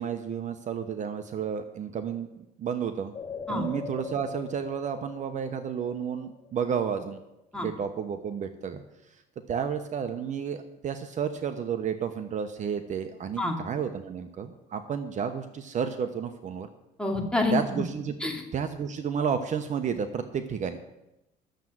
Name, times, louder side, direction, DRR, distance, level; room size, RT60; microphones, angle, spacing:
voice 1, 0.0-3.1 3.5-7.2 7.6-8.8 9.5-16.7 17.5-18.1 18.5-20.8, right 7 dB, 45° right, 8 dB, 1.0 m, -31 dB
sound 1, 3.1-6.8 7.2-7.3, left 6 dB, 30° left, 1.1 m, -41 dB
voice 2, 17.0-17.8 18.2-18.4, left 2 dB, 5° left, 0 dB, 2.4 m, -27 dB
12.0 x 7.2 x 7.8 m, 0.91 s
cardioid pair, 110°, 17 cm